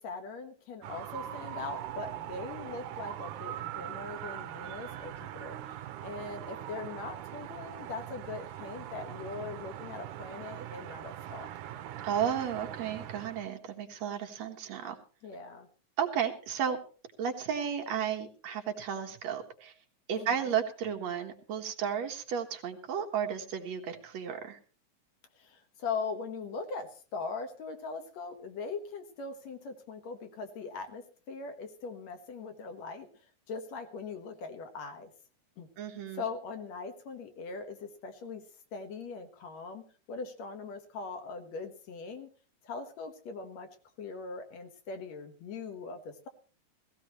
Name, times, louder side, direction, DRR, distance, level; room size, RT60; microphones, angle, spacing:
voice 1, 0.0-5.8 6.0-11.5 15.2-15.7 20.1-20.6 25.4-33.1 33.5-35.1 35.6-35.7 36.1-38.4 38.7-39.8 40.1-42.3 42.6-43.7 44.0-46.3, left 4 dB, 65° left, 7 dB, 2.6 m, -41 dB
sound 1, 0.8-13.5, right 12 dB, 85° right, 2.3 m, -42 dB
voice 2, 12.0-15.0 16.0-16.8 17.2-19.7 20.1-24.6 35.8-36.2, right 8 dB, 65° right, 4 dB, 2.5 m, -33 dB
17.0 x 16.0 x 3.1 m, 0.38 s
omnidirectional pair, 3.4 m